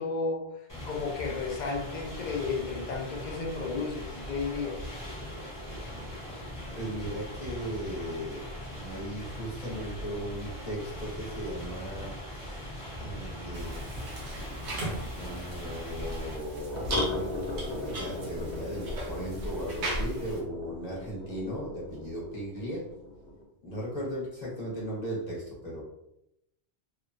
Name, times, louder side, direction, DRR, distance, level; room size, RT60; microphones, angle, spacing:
voice 1, 0.0-4.8, left 4 dB, 55° left, 0 dB, 0.5 m, -33 dB
sound 1, 0.7-16.4, equal, 20° left, 1.1 m, -41 dB
sound 2, 5.0-14.2 14.5-14.6 14.9-15.0 15.4-15.5 16.7-23.4, left 2 dB, 80° left, 1.1 m, -40 dB
voice 2, 6.7-12.6 13.0-13.9 15.1-16.9 17.5-22.9 23.6-25.8, equal, 40° left, -5 dB, 0.9 m, -37 dB
sound 3, 13.5-20.4, equal, 80° right, 1.0 m, -37 dB
2.9 x 2.2 x 2.5 m, 0.83 s
omnidirectional pair, 1.1 m